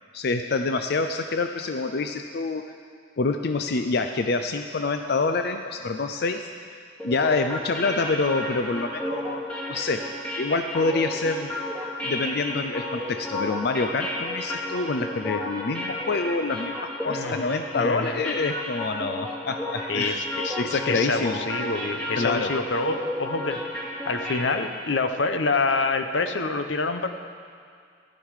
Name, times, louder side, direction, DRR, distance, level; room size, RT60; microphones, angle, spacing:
voice 1, 0.1-2.6 3.2-6.5 7.0-9.4 9.7-10.1 10.4-11.5 12.0-20.2 20.6-21.4 22.2-22.5, left 3 dB, 60° left, 6 dB, 0.5 m, -26 dB
sound 1, 7.0-24.9, left 1 dB, 5° left, 2.2 m, -32 dB
voice 2, 17.1-18.2 19.9-23.6 24.0-27.1, left 3 dB, 85° left, 8 dB, 0.8 m, -27 dB
15.0 x 12.0 x 4.9 m, 2.1 s
head